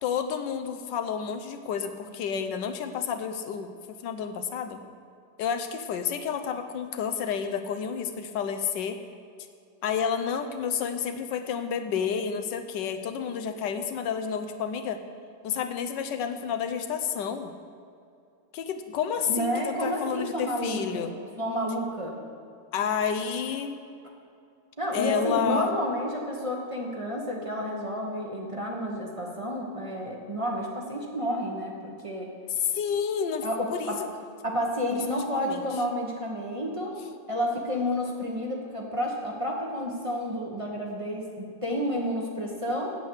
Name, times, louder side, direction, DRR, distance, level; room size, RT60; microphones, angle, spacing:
voice 1, 0.0-3.7 4.0-4.8 5.4-9.0 9.8-15.0 15.4-17.5 18.5-21.1 22.7-23.8 24.9-25.7 32.6-34.1 34.9-35.0 35.3-35.6, left 7 dB, 85° left, 7 dB, 1.4 m, -30 dB
voice 2, 19.3-22.2 24.8-32.3 33.4-34.0 34.4-37.0 37.3-42.9, equal, 20° right, -2 dB, 1.2 m, -30 dB
8.4 x 8.4 x 8.0 m, 2.5 s
omnidirectional pair, 1.9 m